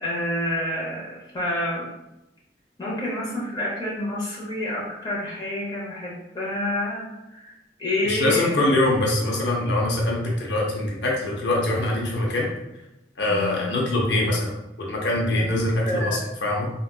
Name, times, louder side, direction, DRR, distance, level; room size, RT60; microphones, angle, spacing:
voice 1, 0.0-1.9 2.8-7.5 7.8-8.5 13.3-13.6 15.3-15.5 15.8-16.3, left 1 dB, 25° left, -5 dB, 0.8 m, -28 dB
voice 2, 8.0-12.5 13.2-14.5 14.8-16.7, left 1 dB, 80° left, -2 dB, 0.7 m, -23 dB
3.6 x 2.4 x 2.3 m, 0.92 s
head